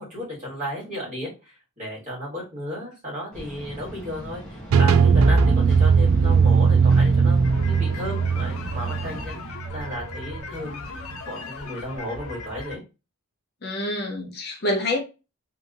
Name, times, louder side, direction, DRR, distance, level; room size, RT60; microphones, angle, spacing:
voice 1, 0.0-9.3 9.7-12.8, equal, 35° right, 1.7 m, -34 dB
sound 1, 3.3-9.3, equal, 5° left, 0.8 m, -39 dB
sound 2, 4.7-10.4, right 5 dB, 70° right, 0.3 m, -19 dB
sound 3, 7.4-12.8, left 3 dB, 90° left, 0.7 m, -38 dB
voice 2, 13.6-15.0, left 1 dB, 50° left, 0.7 m, -26 dB
2.9 x 2.7 x 2.5 m
head